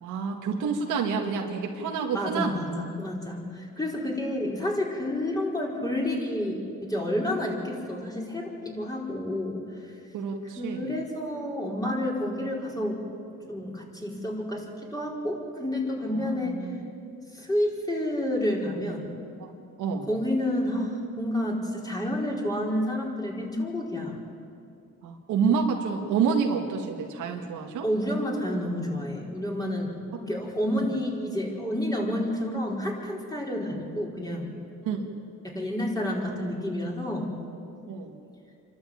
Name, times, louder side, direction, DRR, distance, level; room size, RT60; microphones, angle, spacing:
voice 1, 0.0-2.6 10.1-10.9 16.1-16.8 19.4-19.5 19.8-20.1 25.0-27.9 30.7-30.9 34.9-35.1 36.3-36.4 37.9-38.1, right 6 dB, 90° right, 2 dB, 2.0 m, -28 dB
voice 2, 2.1-9.9 10.6-13.0 13.5-16.7 17.3-19.1 20.1-24.2 27.8-34.5 35.4-37.3, left 1 dB, 10° left, -2 dB, 4.8 m, -30 dB
27.5 x 12.5 x 8.9 m, 2.5 s
cardioid pair, 90°, 30 cm